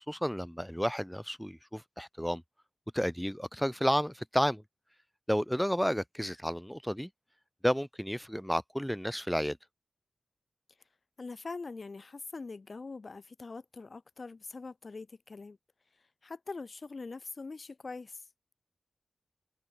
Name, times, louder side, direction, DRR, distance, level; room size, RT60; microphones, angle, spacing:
voice 1, 0.1-2.4 2.9-4.6 5.3-7.1 7.6-9.6, equal, ahead, 0.8 m, -31 dB
voice 2, 11.2-15.6 16.2-18.2, left 4 dB, 45° left, 1.2 m, -43 dB
wide cardioid pair, 100°, 0 cm